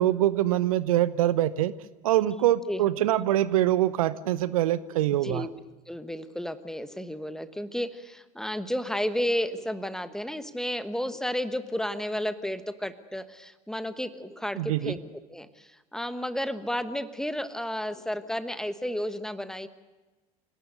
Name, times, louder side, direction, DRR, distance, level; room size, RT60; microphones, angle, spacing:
voice 1, 0.0-1.7 2.0-5.5 14.6-14.9, right 13 dB, 65° right, 17 dB, 0.9 m, -24 dB
voice 2, 5.9-19.7, equal, 5° left, 12 dB, 1.2 m, -32 dB
28.0 x 18.5 x 6.8 m, 1.2 s
figure-of-eight pair, 75°, 20 cm